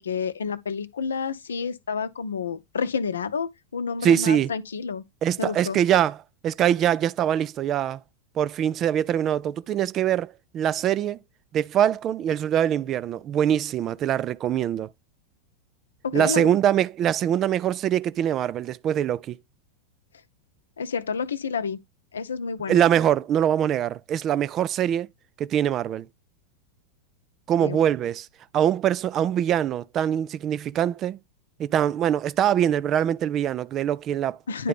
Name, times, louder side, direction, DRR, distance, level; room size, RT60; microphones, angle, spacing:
voice 1, 0.0-5.0 5.4-5.8 16.0-16.5 20.8-21.8 22.1-22.8 27.6-27.8 34.5-34.7, left 5 dB, 70° left, 0.7 m, -29 dB
voice 2, 4.0-4.5 5.2-6.2 6.4-8.0 8.4-11.2 11.5-14.9 16.1-19.4 22.7-25.1 25.4-26.1 27.5-28.3 28.5-31.2 31.6-34.4 34.6-34.7, right 10 dB, 30° right, 0.3 m, -23 dB
10.0 x 3.7 x 3.4 m
figure-of-eight pair, 90°, 0 cm